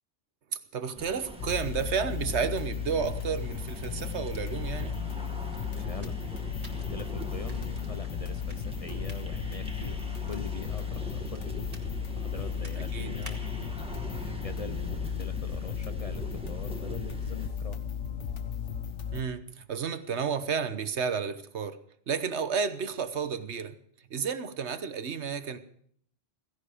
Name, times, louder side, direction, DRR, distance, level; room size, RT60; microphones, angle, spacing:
voice 1, 0.7-5.0 12.9-13.1 19.1-21.8 22.1-23.8 24.1-25.6, right 6 dB, 70° right, 1.3 m, -31 dB
sound 1, 1.0-17.5, equal, 5° right, 1.8 m, -42 dB
sound 2, 1.4-19.2, left 7 dB, 80° left, 1.5 m, -35 dB
sound 3, 4.1-13.7, right 2 dB, 35° right, 2.0 m, -56 dB
voice 2, 5.8-6.2 6.7-10.0 10.2-11.7 12.1-13.4 13.7-17.8, left 4 dB, 35° left, 0.7 m, -43 dB
16.5 x 16.0 x 5.0 m
omnidirectional pair, 1.2 m